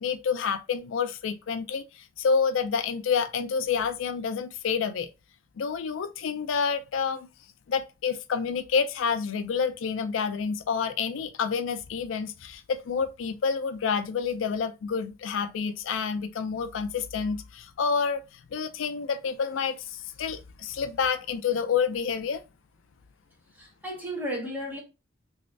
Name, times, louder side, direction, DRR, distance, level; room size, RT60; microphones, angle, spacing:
voice 1, 0.0-5.1 5.6-7.3 7.7-22.4, left 6 dB, 80° left, 0.4 m, -28 dB
voice 2, 23.5-24.8, equal, 10° right, 1.1 m, -34 dB
3.1 x 2.7 x 3.1 m
head